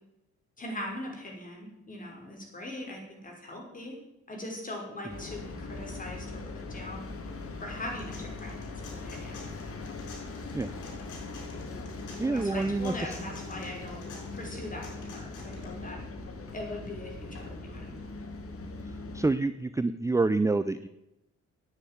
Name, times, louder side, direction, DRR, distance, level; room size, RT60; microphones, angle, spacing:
voice 1, 0.6-4.0 4.3-6.3 6.7-7.1 7.6-8.6 9.0-9.5 12.2-14.1 14.3-16.0 16.5-17.9, left 1 dB, 25° left, 0 dB, 5.7 m, -40 dB
sound 1, 5.1-19.3, left 3 dB, 50° left, 2.3 m, -40 dB
sound 2, 7.9-15.6, left 3 dB, 80° left, 6.9 m, -50 dB
voice 2, 12.2-13.2 19.1-20.9, right 3 dB, 10° right, 12 dB, 0.5 m, -27 dB
10.0 x 9.0 x 9.4 m, 0.91 s
cardioid pair, 90°, 30 cm